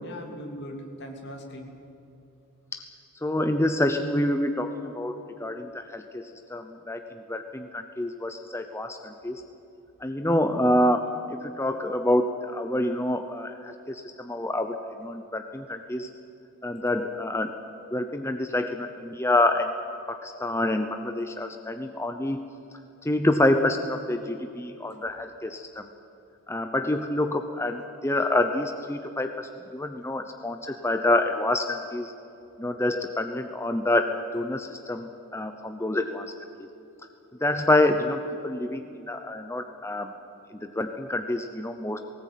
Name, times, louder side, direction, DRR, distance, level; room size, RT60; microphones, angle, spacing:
voice 1, 0.0-1.7 13.6-13.8 41.7-41.8, equal, 50° left, 1 dB, 3.1 m, -40 dB
voice 2, 3.2-9.4 10.0-16.1 16.6-17.5 17.9-19.7 20.1-22.4 23.0-25.9 26.5-32.1 32.6-36.3 36.6-36.7 37.4-40.1 40.5-42.0, left 1 dB, 10° left, 6 dB, 0.8 m, -27 dB
19.0 x 18.5 x 9.3 m, 2.7 s
head